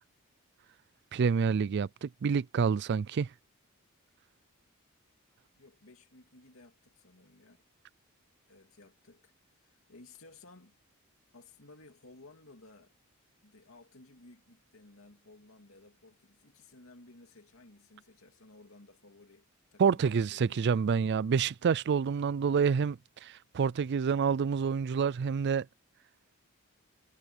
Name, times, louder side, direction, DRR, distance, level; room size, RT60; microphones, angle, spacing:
voice 1, 1.1-3.3 19.8-25.7, right 6 dB, 55° right, 0.4 m, -28 dB
voice 2, 5.6-7.6 8.5-10.8 11.3-12.9 13.4-20.7, left 2 dB, 70° left, 2.6 m, -57 dB
head